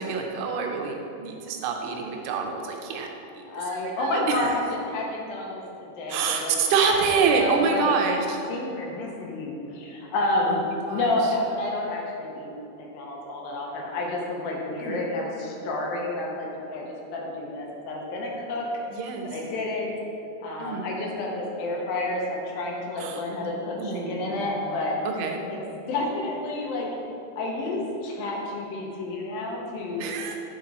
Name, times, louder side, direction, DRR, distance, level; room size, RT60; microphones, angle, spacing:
voice 1, 0.0-3.1 4.0-4.5 6.1-8.4 10.5-11.1 14.8-15.1 18.9-19.3 20.6-20.9 23.0-23.5 23.8-24.5 25.2-25.4 30.0-30.4, right 5 dB, 90° right, 2 dB, 2.8 m, -26 dB
voice 2, 3.5-8.0 8.5-16.9 17.1-18.7 19.2-19.9 20.4-25.0 25.5-25.6 25.9-26.9 27.4-30.1, left 2 dB, 75° left, -1 dB, 2.6 m, -30 dB
9.3 x 5.4 x 4.0 m, 2.8 s
omnidirectional pair, 4.5 m